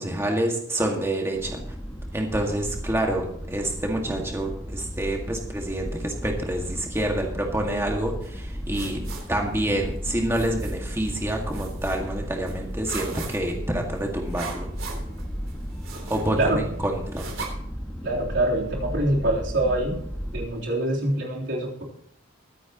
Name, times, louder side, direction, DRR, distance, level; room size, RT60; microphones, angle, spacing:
voice 1, 0.0-1.6 2.1-9.0 9.3-14.7 16.1-17.2, right 1 dB, 10° right, 1 dB, 1.9 m, -27 dB
sound 1, 1.3-20.5, equal, 5° left, 1.7 m, -35 dB
sound 2, 8.2-17.5, right 4 dB, 85° right, 3.7 m, -41 dB
voice 2, 18.0-20.0 20.3-21.8, right 1 dB, 65° right, -3 dB, 3.6 m, -25 dB
22.5 x 9.3 x 3.0 m, 0.68 s
head